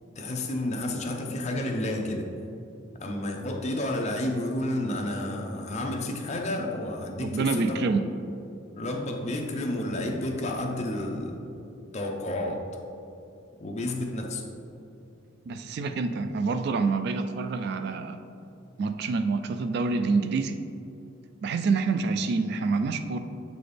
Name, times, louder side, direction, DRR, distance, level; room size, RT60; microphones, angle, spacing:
voice 1, 0.2-2.3 3.0-7.8 8.8-11.6 11.9-12.7 13.6-14.4, left 1 dB, 35° left, 2 dB, 0.6 m, -31 dB
voice 2, 7.2-8.1 15.5-18.2 18.8-20.6 21.4-23.2, right 4 dB, 55° right, 9 dB, 0.3 m, -27 dB
7.7 x 4.1 x 3.3 m, 2.7 s
head